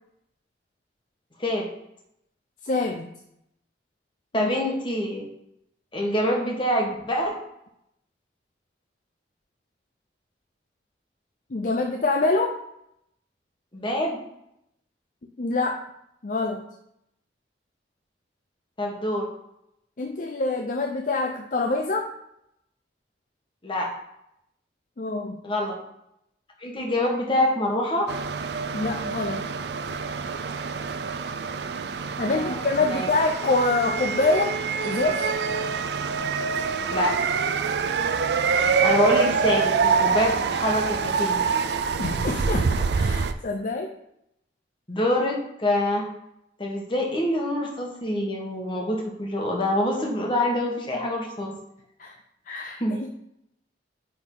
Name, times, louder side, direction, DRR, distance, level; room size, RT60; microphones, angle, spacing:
voice 1, 2.6-3.1 4.3-4.5 11.5-12.6 15.4-15.8 16.2-16.7 20.0-22.1 25.0-25.4 28.7-29.5 32.2-34.5 34.8-35.2 42.0-43.9 52.0-52.1 52.5-53.1, left 3 dB, 45° left, 2 dB, 0.5 m, -25 dB
voice 2, 4.3-5.2 5.9-7.4 13.7-14.2 18.8-19.3 23.6-23.9 25.4-25.8 26.6-28.1 32.3-33.1 36.9-37.1 38.8-41.4 44.9-46.0 46.6-51.6 52.8-53.0, left 1 dB, 30° left, -1 dB, 1.4 m, -25 dB
sound 1, 28.1-43.3, right 5 dB, 65° right, 0.4 m, -26 dB
9.1 x 3.8 x 3.9 m, 0.79 s
head